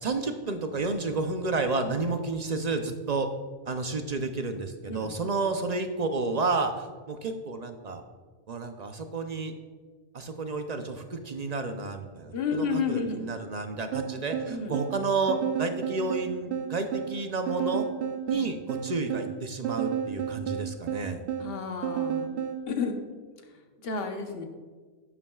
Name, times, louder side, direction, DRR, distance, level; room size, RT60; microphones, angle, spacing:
voice 1, 0.0-3.3 3.7-8.0 8.5-9.5 10.1-17.9 18.3-21.2, right 3 dB, 45° right, 6 dB, 0.5 m, -31 dB
voice 2, 12.3-13.3 14.5-14.8 18.3-18.5 21.4-22.3 22.7-22.9 23.8-24.4, left 5 dB, 55° left, 4 dB, 1.1 m, -31 dB
sound 1, 13.9-22.6, right 8 dB, 65° right, 0.9 m, -32 dB
11.0 x 9.5 x 2.3 m, 1.4 s
omnidirectional pair, 1.3 m